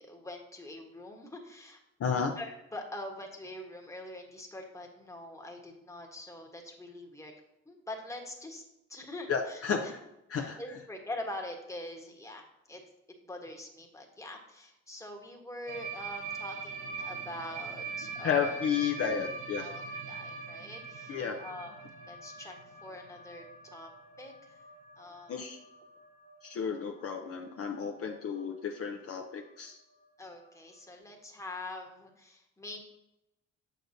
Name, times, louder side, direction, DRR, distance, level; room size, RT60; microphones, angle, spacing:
voice 1, 0.0-1.8 2.4-7.3 7.6-8.6 8.9-9.9 10.3-12.8 13.2-18.6 19.6-21.7 22.1-23.4 23.7-23.9 24.2-24.6 25.0-25.5 30.2-32.8, left 1 dB, 10° left, 1 dB, 1.2 m, -44 dB
voice 2, 2.0-2.3 9.3-10.0 10.3-10.6 18.2-19.7 21.1-21.4 25.3-25.6 26.4-29.8, left 6 dB, 50° left, 3 dB, 0.7 m, -32 dB
sound 1, 15.7-27.5 27.8-28.0 28.3-28.5 28.8-28.9 29.2-29.3 30.4-30.5, right 4 dB, 80° right, 1.0 m, -43 dB
6.6 x 6.3 x 2.7 m, 0.87 s
cardioid pair, 90°, 30 cm